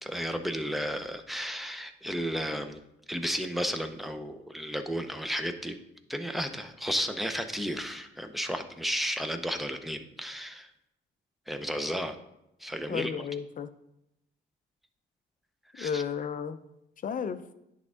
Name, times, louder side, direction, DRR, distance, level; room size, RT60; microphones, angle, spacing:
voice 1, 0.0-2.8 3.1-5.8 6.1-10.7 11.5-12.2 12.6-13.1 15.7-16.0, equal, ahead, 7 dB, 0.7 m, -33 dB
voice 2, 12.9-13.7 15.8-16.6 17.0-17.4, left 7 dB, 45° left, 12 dB, 0.5 m, -33 dB
10.0 x 3.6 x 3.7 m, 0.83 s
cardioid pair, 90°, 20 cm